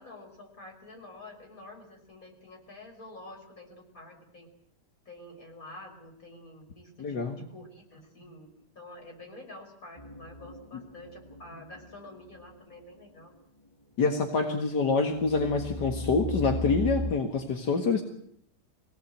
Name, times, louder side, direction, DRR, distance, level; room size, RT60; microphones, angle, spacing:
voice 1, 0.0-4.5 5.1-13.3, left 1 dB, 55° left, 1 dB, 6.2 m, -48 dB
voice 2, 7.0-7.4 14.0-18.0, left 4 dB, 85° left, 3 dB, 2.4 m, -26 dB
sound 1, 10.0-12.7 15.1-17.1, left 1 dB, 10° left, 2.4 m, -36 dB
24.0 x 18.0 x 8.0 m, 0.71 s
omnidirectional pair, 1.8 m